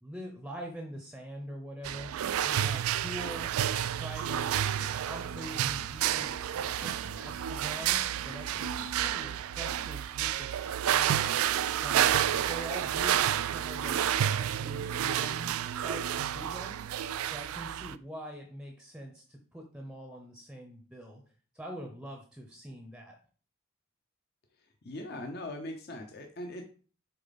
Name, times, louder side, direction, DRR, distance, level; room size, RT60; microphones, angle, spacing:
voice 1, 0.0-2.1 2.4-3.5 3.9-4.7 5.1-6.3 6.6-8.7 9.0-11.3 11.8-16.8 17.2-21.2 21.5-23.2, equal, 5° right, 2 dB, 0.7 m, -44 dB
sound 1, 1.8-17.9, right 10 dB, 90° right, 0.3 m, -30 dB
sound 2, 3.8-9.8, left 1 dB, 85° left, 2.0 m, -54 dB
voice 2, 24.6-26.6, left 1 dB, 50° left, 4 dB, 0.7 m, -40 dB
6.7 x 4.1 x 4.1 m, 0.41 s
head